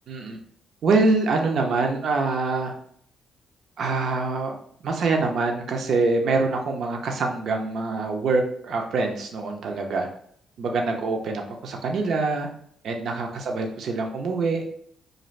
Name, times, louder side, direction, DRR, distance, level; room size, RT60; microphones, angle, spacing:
voice 1, 0.1-0.4 0.8-2.7 3.8-4.6 4.8-10.1 10.6-12.5 12.8-14.6, right 3 dB, 65° right, 3 dB, 0.5 m, -25 dB
2.5 x 2.4 x 3.1 m, 0.62 s
cardioid pair, 90°, 0 cm